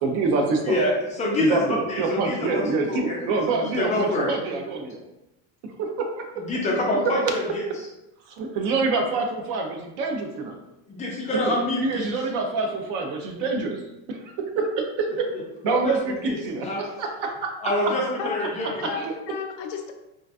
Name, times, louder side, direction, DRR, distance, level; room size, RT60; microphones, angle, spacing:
voice 1, 0.0-0.8 1.4-5.0 5.8-6.3 8.4-10.6 11.8-13.8 14.1-15.3 15.6-16.7 17.0-17.5 19.0-19.1, right 3 dB, 50° right, 3 dB, 0.6 m, -26 dB
voice 2, 0.7-2.6 2.9-4.3 6.4-7.6 10.9-12.1 15.3-16.9 17.6-18.8, left 1 dB, 20° left, -3 dB, 0.3 m, -27 dB
voice 3, 17.9-18.5 18.8-19.9, left 6 dB, 70° left, 4 dB, 0.6 m, -33 dB
3.8 x 2.5 x 2.3 m, 0.95 s
supercardioid pair, 150°, 40 cm